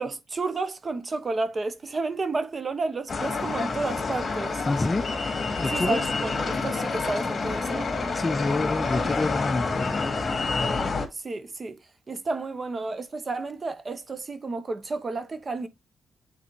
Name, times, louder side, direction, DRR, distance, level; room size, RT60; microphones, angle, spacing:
voice 1, 0.0-4.7 5.7-7.9 11.1-11.8 12.1-15.7, right 3 dB, 35° right, 1.0 m, -31 dB
sound 1, 3.1-11.1, left 4 dB, 40° left, 2.0 m, -28 dB
voice 2, 4.6-5.1 5.6-6.0 8.1-10.3, left 3 dB, 25° left, 0.4 m, -27 dB
8.4 x 4.0 x 3.2 m
cardioid pair, 85°, 0 cm